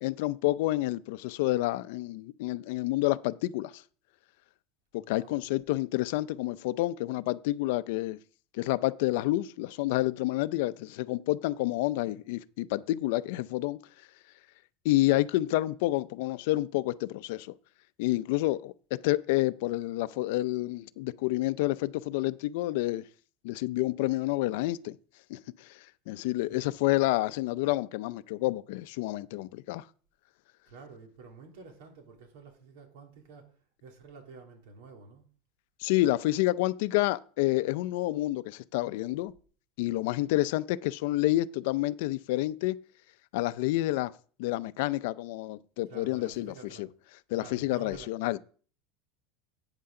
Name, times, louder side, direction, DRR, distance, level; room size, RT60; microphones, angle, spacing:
voice 1, 0.0-3.8 4.9-8.2 8.5-13.8 14.8-17.5 18.0-23.1 23.4-25.0 25.3-25.8 26.1-29.9 35.8-39.3 39.8-42.8 43.3-44.1 44.4-46.9 47.3-48.4, left 17 dB, 65° left, 0.5 m, -29 dB
voice 2, 5.0-5.4 26.5-26.7 30.6-33.5 33.8-35.3 45.9-46.8 47.4-48.1, right 4 dB, 70° right, 3.1 m, -50 dB
11.5 x 8.9 x 3.8 m
supercardioid pair, 165°, 0 cm